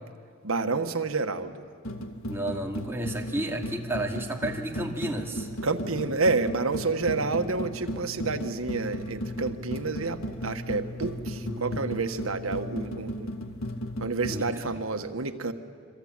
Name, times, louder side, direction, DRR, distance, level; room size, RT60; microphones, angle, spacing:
voice 1, 0.4-1.6 5.6-13.3 14.0-15.5, right 3 dB, 90° right, 7 dB, 1.4 m, -29 dB
sound 1, 1.8-14.5, equal, 75° left, 1.9 m, -35 dB
voice 2, 2.3-5.5 11.4-11.9 14.3-14.7, right 1 dB, 10° right, 0 dB, 2.4 m, -32 dB
26.5 x 24.0 x 8.9 m, 2.1 s
head